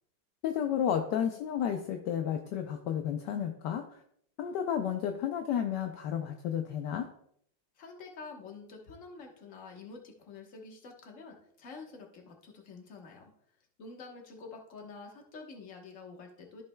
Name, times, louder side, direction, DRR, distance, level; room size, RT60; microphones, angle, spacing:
voice 1, 0.4-4.0 4.4-7.1, left 9 dB, 75° left, 5 dB, 1.2 m, -32 dB
voice 2, 7.7-13.3 13.8-16.6, left 4 dB, 45° left, 1 dB, 1.4 m, -48 dB
13.5 x 5.4 x 2.2 m, 0.69 s
omnidirectional pair, 2.0 m